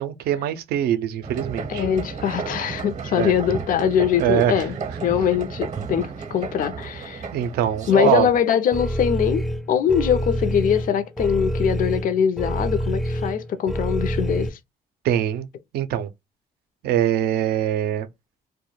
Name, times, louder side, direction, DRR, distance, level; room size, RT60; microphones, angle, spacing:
voice 1, 0.0-1.8 3.2-3.3 4.2-4.6 7.3-8.3 15.0-15.5 15.7-16.1 16.8-18.1, right 11 dB, 85° right, 0.4 m, -23 dB
sound 1, 1.2-8.4, right 5 dB, 45° right, 0.6 m, -32 dB
voice 2, 1.7-7.3 7.9-14.6, left 8 dB, 60° left, 0.4 m, -22 dB
sound 2, 8.7-14.5, equal, ahead, 0.4 m, -27 dB
2.2 x 2.1 x 3.0 m
cardioid pair, 80°, 16 cm